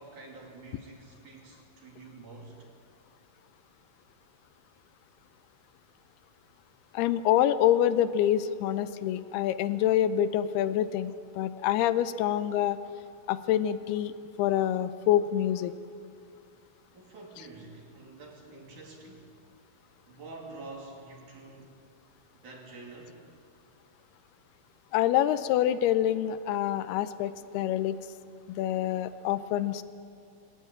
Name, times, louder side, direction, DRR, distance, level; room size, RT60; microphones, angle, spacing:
voice 1, 0.0-2.7 16.9-19.3 20.0-21.8 22.4-23.2, right 3 dB, 50° right, -1 dB, 4.4 m, -47 dB
voice 2, 6.9-12.8 13.3-15.7 24.9-28.0 28.5-29.8, left 11 dB, 90° left, 13 dB, 2.7 m, -26 dB
22.5 x 18.0 x 8.7 m, 2.4 s
omnidirectional pair, 4.5 m